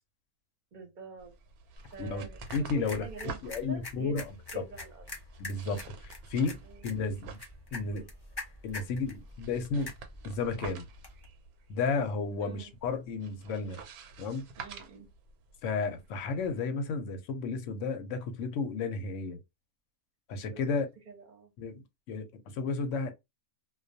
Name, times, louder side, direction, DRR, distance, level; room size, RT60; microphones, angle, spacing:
voice 1, 0.7-1.4 1.9-2.4 2.8-4.1 4.5-5.1 6.6-6.9 12.4-12.7 14.6-15.1 20.5-21.5, right 5 dB, 40° right, 0.7 m, -46 dB
sound 1, 1.2-16.5, right 5 dB, 90° right, 1.1 m, -49 dB
sound 2, 1.8-11.3, left 2 dB, 35° left, 0.4 m, -46 dB
voice 2, 2.5-4.4 5.4-5.9 6.3-6.6 6.8-7.4 7.7-8.1 8.6-9.9 10.2-10.9 11.7-13.8 14.2-14.5 15.6-19.4 20.3-20.8 21.6-23.1, left 4 dB, 65° left, 0.8 m, -33 dB
2.3 x 2.2 x 2.5 m
omnidirectional pair, 1.5 m